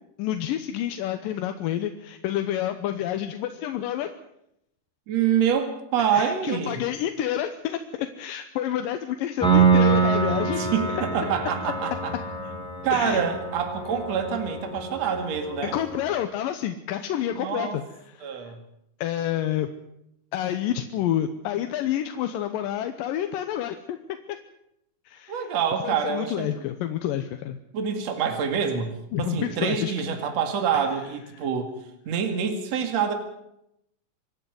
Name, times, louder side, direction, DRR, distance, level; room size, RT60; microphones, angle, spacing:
voice 1, 0.2-4.1 6.0-10.6 10.9-11.0 12.9-13.2 15.0-15.1 15.6-18.5 19.0-19.7 20.3-24.0 25.1-25.6 25.8-27.6 29.1-29.9 30.7-30.8 31.3-31.5, left 11 dB, 85° left, 8 dB, 2.6 m, -29 dB
voice 2, 5.1-6.8 10.4-12.1 12.8-15.7 17.3-17.8 18.2-18.6 25.3-26.6 27.7-31.8 32.1-33.1, right 7 dB, 55° right, 6 dB, 3.2 m, -26 dB
Piano, 9.4-16.1, right 5 dB, ahead, 3.8 m, -25 dB
25.5 x 10.5 x 9.6 m, 0.80 s
omnidirectional pair, 3.9 m